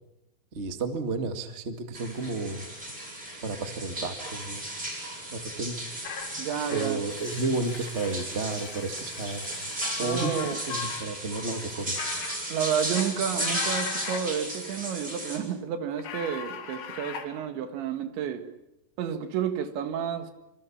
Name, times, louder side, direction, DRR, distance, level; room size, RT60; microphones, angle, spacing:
voice 1, 0.5-2.7 3.4-4.6 5.3-5.7 6.7-9.4 10.0-11.9, right 3 dB, 55° right, 0.7 m, -32 dB
sound 1, 1.9-15.4, right 1 dB, 20° right, 8.4 m, -35 dB
sound 2, 6.0-11.0 11.3-11.4 12.0-12.4 12.7-14.2 16.0-17.3, left 7 dB, 70° left, 4.5 m, -38 dB
voice 2, 6.4-7.0 10.0-10.6 12.5-18.5 19.0-20.3, right 8 dB, 80° right, 4.1 m, -30 dB
26.5 x 26.5 x 7.3 m
omnidirectional pair, 5.1 m